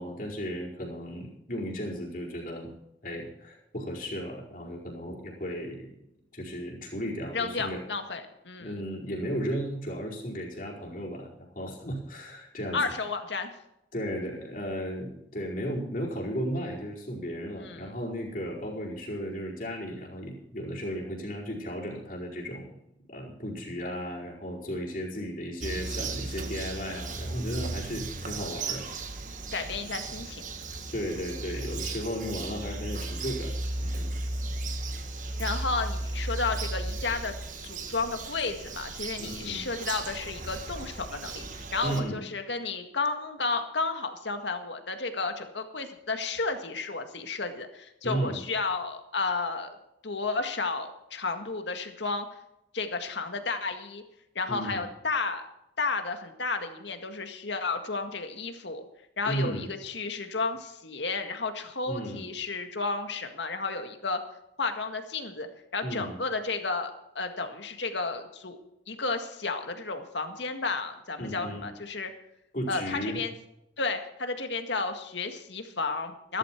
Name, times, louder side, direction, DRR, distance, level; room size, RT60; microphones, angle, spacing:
voice 1, 0.0-2.7 3.0-5.9 6.3-7.8 8.6-12.8 13.9-22.8 23.1-28.8 30.9-34.1 39.2-39.6 41.8-42.2 48.0-48.4 54.5-54.8 59.3-59.7 61.8-62.2 65.8-66.2 71.2-71.6 72.5-73.2, equal, 45° left, -3 dB, 4.7 m, -35 dB
voice 2, 7.3-8.9 12.7-13.5 17.6-17.9 29.5-30.4 35.4-37.4 37.6-49.7 50.0-52.3 52.7-54.0 54.4-55.4 55.8-58.8 59.2-64.2 64.6-65.5 65.7-68.6 68.9-72.1 72.7-73.3 73.8-76.4, left 3 dB, 75° left, 6 dB, 1.9 m, -32 dB
Bird vocalization bird call bird song, 25.6-42.0, right 2 dB, 45° right, 1.6 m, -35 dB
15.0 x 13.5 x 4.6 m, 0.85 s
head